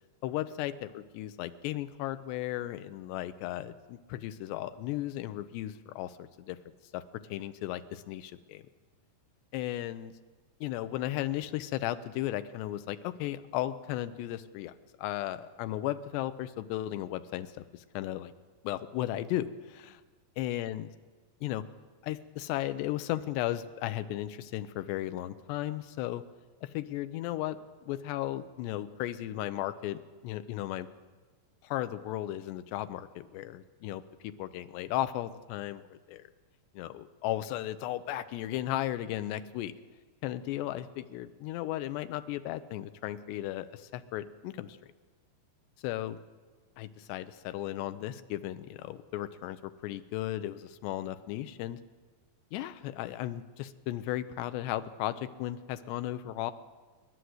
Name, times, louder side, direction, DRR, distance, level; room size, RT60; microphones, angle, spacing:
voice 1, 0.2-6.6 6.9-7.0 7.3-8.6 9.5-10.1 10.6-14.7 15.0-18.3 18.6-20.0 20.4-20.9 21.4-21.6 22.0-26.2 26.6-30.9 31.6-36.3 36.7-39.7 40.2-44.8 45.8-46.2 46.8-51.8 52.5-56.5, left 14 dB, 85° left, 12 dB, 2.9 m, -35 dB
28.5 x 11.5 x 7.9 m, 1.4 s
omnidirectional pair, 4.9 m